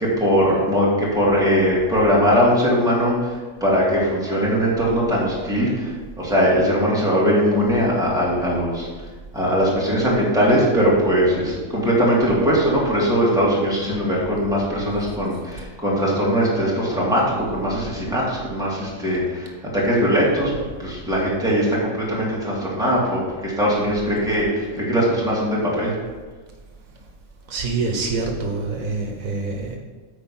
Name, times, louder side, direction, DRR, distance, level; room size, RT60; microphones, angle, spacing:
voice 1, 0.0-3.3 3.6-8.9 9.3-25.9, equal, 5° right, -6 dB, 2.4 m, -20 dB
voice 2, 27.5-29.8, right 3 dB, 80° right, 2 dB, 1.5 m, -26 dB
9.1 x 4.4 x 5.8 m, 1.4 s
omnidirectional pair, 1.4 m